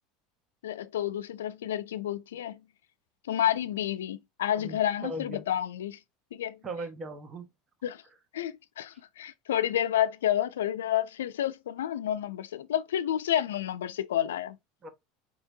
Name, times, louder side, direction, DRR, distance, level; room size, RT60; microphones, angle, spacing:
voice 1, 0.6-2.6 3.3-6.0 6.3-6.6 7.8-8.0 8.3-14.6, left 11 dB, 90° left, 0.4 m, -30 dB
voice 2, 4.6-5.4 6.6-7.5 14.8-14.9, right 2 dB, 35° right, 1.1 m, -38 dB
4.5 x 2.8 x 2.7 m
hypercardioid pair, 95°, 0 cm